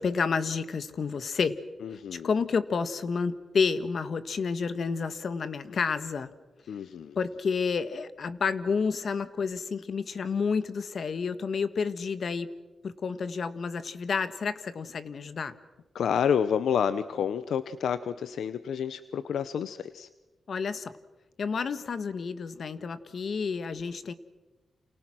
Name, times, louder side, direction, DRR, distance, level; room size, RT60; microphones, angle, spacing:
voice 1, 0.0-1.6 1.9-6.3 7.1-12.5 12.8-15.5 20.5-20.9 21.4-24.1, left 5 dB, 65° left, 12 dB, 1.7 m, -30 dB
voice 2, 2.0-2.3 6.7-7.2 15.9-20.1, left 8 dB, 90° left, 13 dB, 0.8 m, -29 dB
29.5 x 29.0 x 6.3 m, 1.1 s
cardioid pair, 65°, 0 cm